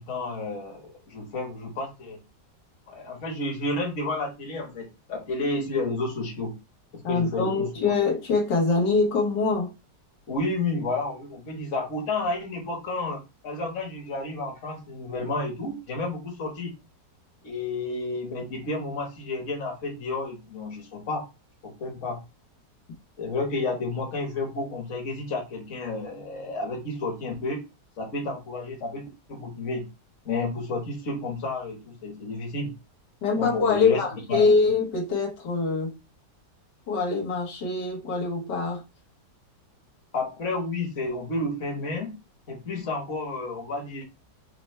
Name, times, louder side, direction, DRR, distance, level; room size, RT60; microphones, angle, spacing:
voice 1, 0.0-2.2 2.9-6.5 6.9-8.0 10.3-16.7 17.4-21.2 21.6-22.2 23.2-27.6 28.0-29.9 30.2-32.7 33.3-34.6 40.1-42.2 42.5-44.0, left 2 dB, 45° left, 1.5 m, -31 dB
voice 2, 7.0-9.7 33.2-35.9 36.9-38.8, left 4 dB, 75° left, 1.7 m, -24 dB
5.7 x 2.1 x 3.1 m
omnidirectional pair, 1.9 m